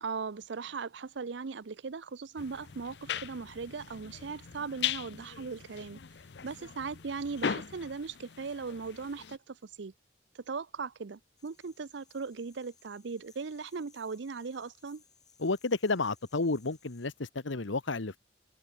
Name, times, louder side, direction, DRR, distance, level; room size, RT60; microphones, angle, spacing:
voice 1, 0.0-6.0 6.4-9.9 10.5-15.0, right 4 dB, 70° right, 0.6 m, -39 dB
sound 1, 2.4-9.4, left 8 dB, 65° left, 0.6 m, -39 dB
sound 2, 11.4-17.1, left 6 dB, 20° left, 7.2 m, -64 dB
voice 2, 15.4-18.2, left 3 dB, 85° left, 1.2 m, -31 dB
head